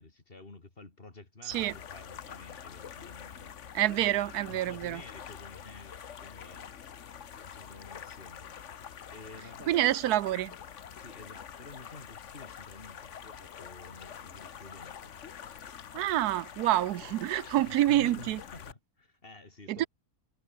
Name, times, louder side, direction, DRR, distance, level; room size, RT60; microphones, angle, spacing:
voice 1, 0.0-3.5 4.1-6.7 7.4-8.5 9.1-9.8 10.9-15.2 17.4-19.9, left 2 dB, 40° left, 3.1 m, -50 dB
sound 1, 1.5-18.7, left 8 dB, 55° left, 1.3 m, -46 dB
voice 2, 3.7-5.0 9.7-10.5 15.9-18.4 19.7-19.9, right 14 dB, 90° right, 1.2 m, -27 dB
omnidirectional pair, 1.6 m